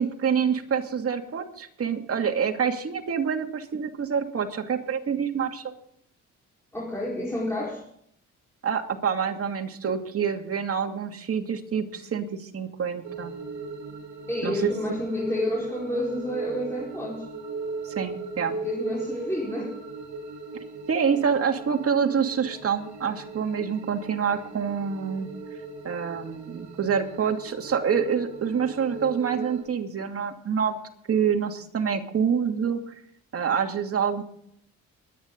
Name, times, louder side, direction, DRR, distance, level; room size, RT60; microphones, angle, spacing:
voice 1, 0.0-5.7 8.6-13.3 14.4-14.7 17.8-18.5 20.9-25.3 25.8-30.7 31.1-32.8 33.3-34.2, right 7 dB, 50° right, 3 dB, 2.5 m, -26 dB
voice 2, 6.7-7.8 14.3-17.3 18.5-19.8, left 1 dB, 10° left, -6 dB, 4.7 m, -29 dB
sound 1, 13.0-29.6, right 3 dB, 70° right, 4.8 m, -38 dB
23.0 x 9.9 x 3.9 m, 0.70 s
cardioid pair, 90°, 30 cm